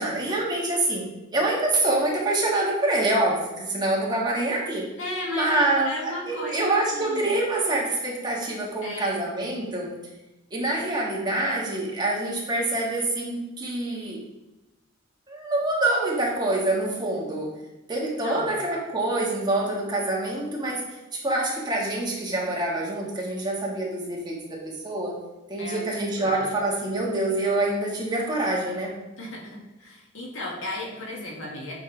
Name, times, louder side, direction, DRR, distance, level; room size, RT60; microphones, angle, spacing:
voice 1, 0.0-4.9 5.3-10.0 10.5-14.2 15.3-17.5 17.9-20.8 21.2-25.2 25.5-28.9, right 2 dB, 20° right, -3 dB, 1.6 m, -26 dB
voice 2, 5.0-7.3 8.8-9.2 18.2-18.5 25.6-26.3 29.2-31.7, left 1 dB, 85° left, -2 dB, 2.0 m, -35 dB
8.4 x 5.4 x 3.3 m, 1.0 s
head